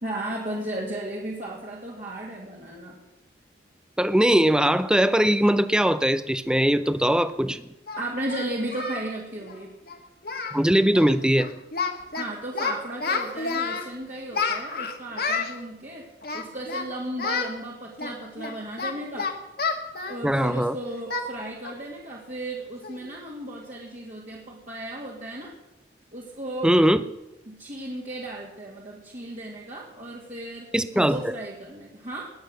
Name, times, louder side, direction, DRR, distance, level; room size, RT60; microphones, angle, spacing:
voice 1, 0.0-3.0 8.0-9.7 12.2-16.1 16.3-19.3 20.1-25.5 26.1-26.7 27.5-32.3, right 1 dB, 40° right, -4 dB, 2.3 m, -35 dB
voice 2, 4.0-7.6 10.5-11.5 20.2-20.7 26.6-27.0 30.7-31.2, equal, 5° right, 13 dB, 0.5 m, -20 dB
Singing, 7.1-7.2 7.9-9.1 9.4-9.6 9.9-10.0 10.2-10.6 10.9-11.1 11.4-12.2 12.5-13.9 14.3-15.5 16.2-16.9 17.2-17.5 18.0-20.6 21.1-21.3 21.6-21.8 22.2-22.3 22.8-23.1, left 4 dB, 55° left, 1.7 m, -30 dB
20.5 x 8.4 x 6.6 m, 0.91 s
head